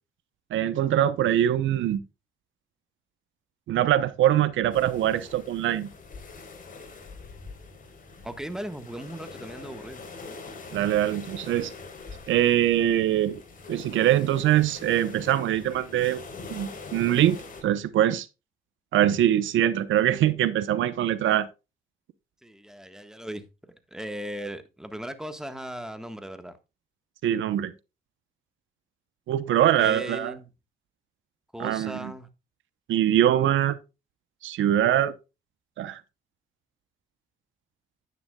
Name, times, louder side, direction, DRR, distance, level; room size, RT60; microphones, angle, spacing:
voice 1, 0.5-2.0 3.7-5.9 10.7-11.7 12.3-13.4 13.7-16.2 16.5-17.4 17.6-18.3 18.9-21.5 27.2-27.7 29.3-30.3 31.6-32.1 32.9-33.8 34.4-35.1 35.8-36.0, right 11 dB, 75° right, 0.9 m, -23 dB
sound 1, 4.7-17.6, left 4 dB, 45° left, 4.0 m, -44 dB
voice 2, 8.2-10.0 22.4-26.6 29.5-30.5 31.5-32.3, right 1 dB, 5° right, 1.4 m, -38 dB
10.5 x 9.5 x 2.3 m
cardioid pair, 90°, 20 cm